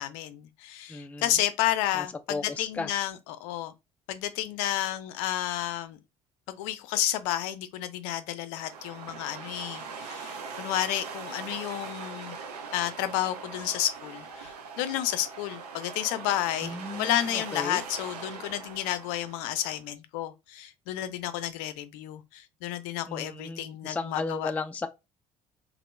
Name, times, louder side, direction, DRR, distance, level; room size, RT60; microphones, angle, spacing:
voice 1, 0.0-3.7 4.1-6.0 6.5-12.4 12.7-24.5, left 12 dB, 60° left, 0.5 m, -31 dB
voice 2, 0.9-1.2 1.9-2.9 16.6-17.8 23.1-24.9, left 3 dB, 5° left, 0.3 m, -35 dB
sound 1, 8.6-19.8, right 5 dB, 75° right, 0.6 m, -41 dB
2.9 x 2.1 x 3.2 m
figure-of-eight pair, 55°, 20 cm